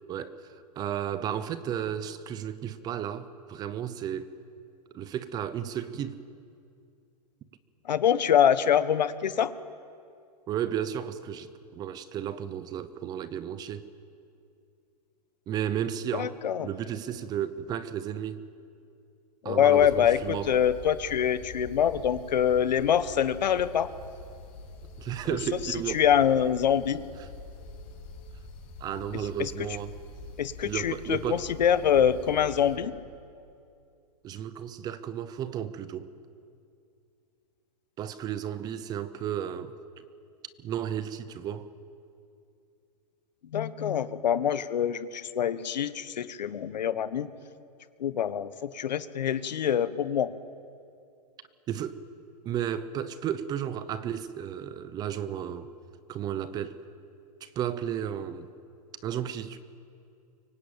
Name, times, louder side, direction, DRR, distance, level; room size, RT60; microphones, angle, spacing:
voice 1, 0.1-0.5 0.8-4.3 4.9-6.2 10.5-13.9 15.5-16.4 16.6-18.4 19.4-20.5 25.0-26.0 27.2-27.3 28.8-29.9 30.6-31.5 34.2-36.1 38.0-39.7 40.6-41.7 51.7-52.0 52.4-55.7 56.1-56.8 57.4-58.5 59.0-59.6, right 9 dB, 20° right, 0.8 m, -33 dB
voice 2, 7.9-9.5 16.1-16.7 19.4-23.9 25.9-27.0 29.4-29.5 30.4-32.9 43.5-47.3 48.0-50.3, left 9 dB, 90° left, 1.4 m, -25 dB
sound 1, 19.7-32.8, left 3 dB, 30° left, 4.7 m, -45 dB
24.0 x 24.0 x 8.9 m
hypercardioid pair, 155°, 21 cm